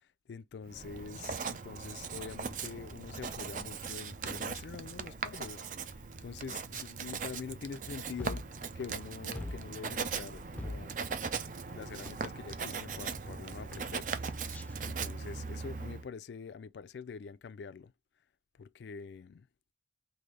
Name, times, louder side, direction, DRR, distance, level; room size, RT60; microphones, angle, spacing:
voice 1, 0.0-8.5 8.8-11.0 11.7-14.1 14.8-17.9 18.6-19.5, left 5 dB, 75° left, 0.4 m, -45 dB
Writing, 0.7-16.1, right 5 dB, 45° right, 0.5 m, -39 dB
sound 1, 8.2-9.1 9.3-10.1 10.6-12.1 12.5-13.0 13.3-14.7, left 1 dB, 10° left, 0.5 m, -44 dB
3.8 x 2.6 x 3.2 m
head